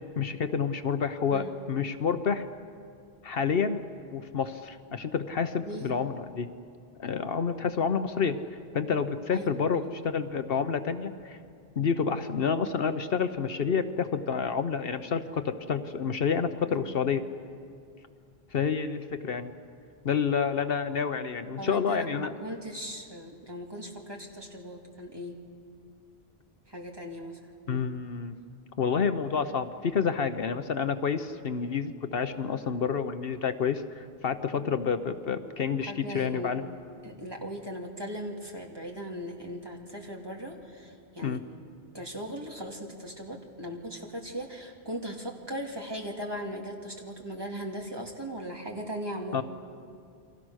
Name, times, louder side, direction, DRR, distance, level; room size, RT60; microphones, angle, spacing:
voice 1, 0.2-2.4 3.2-3.8 4.1-6.5 7.0-8.4 8.7-11.4 11.8-17.2 18.5-19.5 20.0-22.3 27.7-28.3 28.8-36.7 41.2-41.4 49.3-49.4, left 6 dB, 65° left, 9 dB, 1.1 m, -29 dB
voice 2, 5.6-5.9 9.3-9.5 9.7-10.1 16.7-17.1 21.6-25.4 26.7-27.4 35.8-36.5 37.0-41.4 41.9-49.4, equal, 25° right, 0 dB, 2.6 m, -38 dB
29.5 x 24.0 x 6.4 m, 2.4 s
omnidirectional pair, 1.1 m